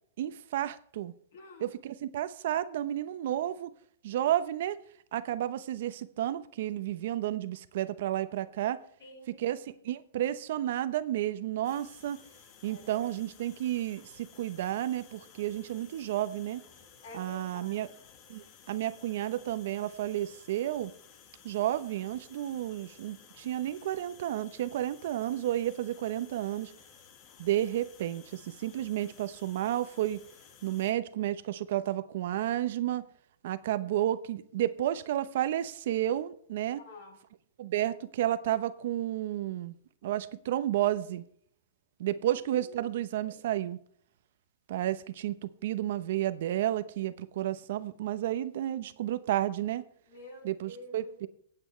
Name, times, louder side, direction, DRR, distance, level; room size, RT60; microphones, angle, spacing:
voice 1, 0.2-1.1 1.6-3.7 4.0-4.8 5.1-8.8 9.3-12.2 12.6-16.6 17.1-17.9 18.3-20.9 21.4-26.7 27.4-30.2 30.6-33.0 33.4-36.8 37.6-39.7 40.0-41.2 42.0-43.8 44.7-49.8 50.4-51.3, right 12 dB, 60° right, 0.8 m, -31 dB
voice 2, 1.3-1.7 9.0-9.4 12.6-13.1 17.0-17.9 36.8-37.2 42.5-42.9 43.2-43.3 50.1-51.1, left 1 dB, 65° left, 7.3 m, -49 dB
sound 1, 11.6-30.9, left 7 dB, 30° left, 1.6 m, -56 dB
24.0 x 8.8 x 3.3 m
supercardioid pair, 160°, 0 cm